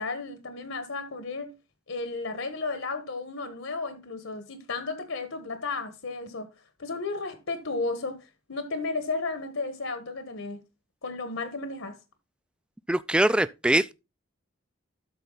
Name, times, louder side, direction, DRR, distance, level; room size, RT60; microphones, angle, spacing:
voice 1, 0.0-1.5 1.9-6.5 6.8-10.6 11.0-12.0, left 3 dB, 75° left, 1.3 m, -33 dB
voice 2, 12.9-13.9, right 1 dB, 5° right, 0.3 m, -23 dB
12.5 x 4.3 x 3.9 m
head